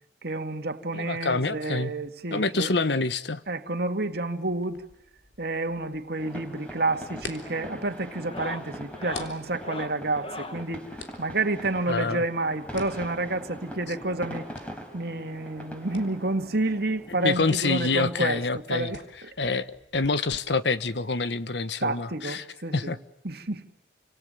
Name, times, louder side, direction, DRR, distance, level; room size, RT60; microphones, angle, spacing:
voice 1, 0.2-2.7 3.5-4.8 5.4-10.9 11.2-14.5 14.9-18.4 18.7-19.5 21.8-23.0 23.2-23.6, right 2 dB, 60° right, 2.3 m, -29 dB
voice 2, 0.9-1.9 2.3-3.4 11.9-12.2 17.2-18.9 19.4-22.4 22.7-23.0, left 3 dB, 70° left, 1.3 m, -26 dB
sound 1, 4.6-20.1, left 3 dB, 85° left, 3.6 m, -49 dB
sound 2, 6.2-17.5, equal, 5° left, 5.2 m, -42 dB
sound 3, 6.6-6.9 7.2-7.6 8.1-10.7 12.0-13.4 14.4-14.5 14.7-14.8 15.3-15.4 16.7-16.8 18.1-18.2, left 3 dB, 30° left, 1.7 m, -41 dB
30.0 x 26.5 x 6.9 m
head